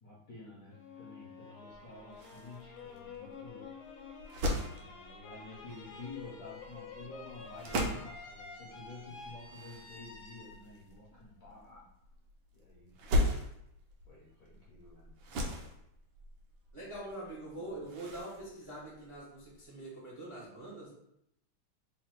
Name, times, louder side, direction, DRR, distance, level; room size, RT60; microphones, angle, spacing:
voice 1, 0.0-3.7 4.7-11.9 12.5-13.0 14.0-15.2 17.6-17.8, left 3 dB, 60° left, -6 dB, 0.9 m, -50 dB
sound 1, 0.7-11.7, left 4 dB, 85° left, 1.5 m, -50 dB
sound 2, 1.7-19.6, left 1 dB, 70° right, 1.5 m, -39 dB
voice 2, 16.7-20.9, right 1 dB, 40° right, -6 dB, 0.4 m, -44 dB
4.0 x 2.2 x 4.3 m, 0.77 s
omnidirectional pair, 2.3 m